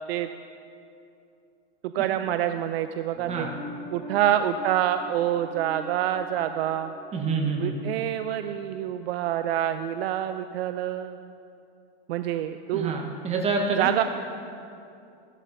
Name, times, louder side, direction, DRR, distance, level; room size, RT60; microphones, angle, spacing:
voice 1, 1.8-3.5 3.9-6.9 7.6-11.3 12.1-13.0 13.7-14.0, right 11 dB, 75° right, 9 dB, 0.5 m, -27 dB
sound 1, 3.1-8.7 8.9-9.0, left 2 dB, 20° left, 2.1 m, -44 dB
voice 2, 7.1-7.7 12.7-13.9, right 4 dB, 20° right, 1 dB, 1.2 m, -27 dB
14.0 x 11.5 x 2.7 m, 2.6 s
supercardioid pair, 150°, 30 cm